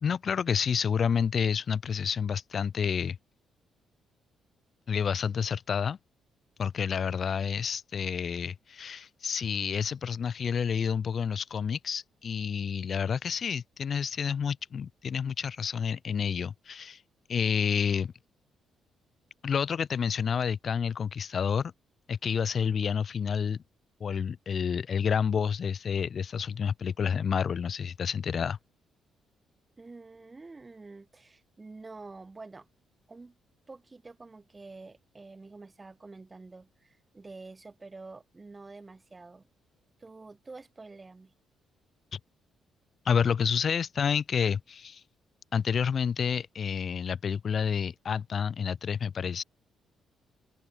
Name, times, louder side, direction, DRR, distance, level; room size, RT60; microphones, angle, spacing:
voice 1, 0.0-3.2 4.9-6.0 6.6-17.0 17.3-18.1 19.4-21.7 22.1-23.6 24.0-28.6 42.1-42.2 43.0-45.0 45.5-49.4, left 7 dB, 50° left, 0.9 m, -29 dB
voice 2, 29.8-32.7 33.1-33.4 33.7-39.5 40.0-41.3, right 3 dB, 25° right, 5.6 m, -48 dB
open air
cardioid pair, 90°, 0 cm